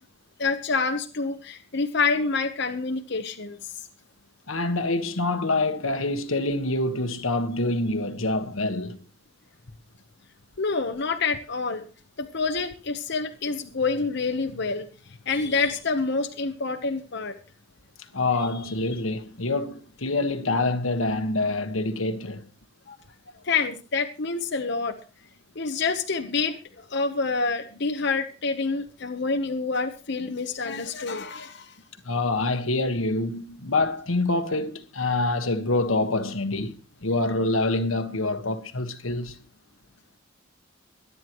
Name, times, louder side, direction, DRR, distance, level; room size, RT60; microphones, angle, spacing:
voice 1, 0.4-3.7 10.6-11.9 12.2-14.9 15.3-17.3 22.9-23.0 23.4-25.0 25.5-31.7, left 4 dB, 60° left, 1.0 m, -27 dB
voice 2, 4.5-9.0 18.1-22.4 32.0-36.8 37.0-39.4, left 2 dB, 90° left, 1.5 m, -26 dB
23.0 x 9.6 x 3.1 m
head